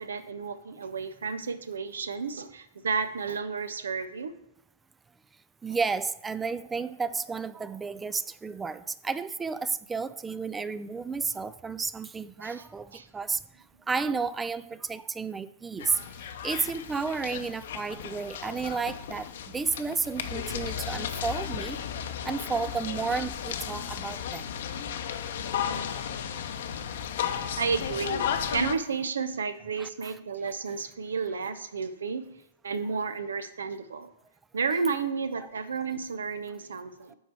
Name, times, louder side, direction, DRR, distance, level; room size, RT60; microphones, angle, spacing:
voice 1, 0.0-4.3 12.4-12.6 12.9-13.1 27.6-32.3 32.6-34.1 34.5-37.1, right 5 dB, 75° right, 12 dB, 0.6 m, -32 dB
voice 2, 5.6-13.4 13.9-16.0 16.4-21.8 22.2-24.5 29.8-30.1 35.4-35.5, right 5 dB, 15° right, 16 dB, 0.3 m, -32 dB
sound 1, 15.8-28.7, left 8 dB, 60° left, 0.7 m, -34 dB
7.9 x 4.8 x 4.5 m, 0.83 s
hypercardioid pair, 115°, 0 cm